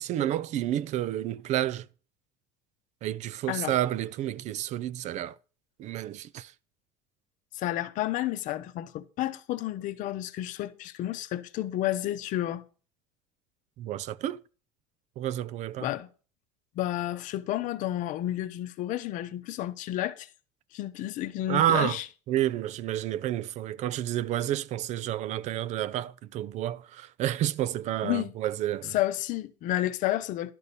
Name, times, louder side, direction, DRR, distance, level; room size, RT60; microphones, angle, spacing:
voice 1, 0.0-1.9 3.0-5.3 5.8-6.5 13.8-14.4 15.2-15.9 21.5-22.0 22.3-28.9, right 12 dB, 50° right, 0.4 m, -30 dB
voice 2, 7.5-12.6 15.8-16.1 16.7-20.3 20.7-22.0 28.0-28.3 28.9-30.5, left 14 dB, 55° left, 0.8 m, -31 dB
11.5 x 4.1 x 6.8 m
supercardioid pair, 105°, 15 cm